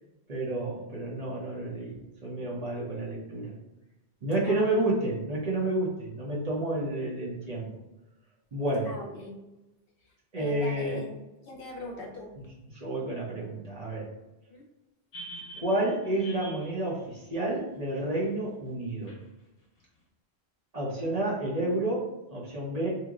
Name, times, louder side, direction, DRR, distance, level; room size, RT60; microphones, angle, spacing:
voice 1, 0.3-2.0 2.2-3.5 4.2-7.7 8.5-9.0 10.3-11.0 12.4-12.5 12.7-14.1 15.6-19.1 20.7-22.9, right 1 dB, 40° right, -6 dB, 0.8 m, -30 dB
voice 2, 4.4-4.8 8.8-9.4 10.0-12.4 14.5-14.7, left 2 dB, 60° left, 0 dB, 0.7 m, -41 dB
sound 1, 15.1-18.1 19.1-19.2, right 1 dB, 35° left, 1.2 m, -45 dB
2.9 x 2.0 x 3.6 m, 0.99 s
omnidirectional pair, 1.1 m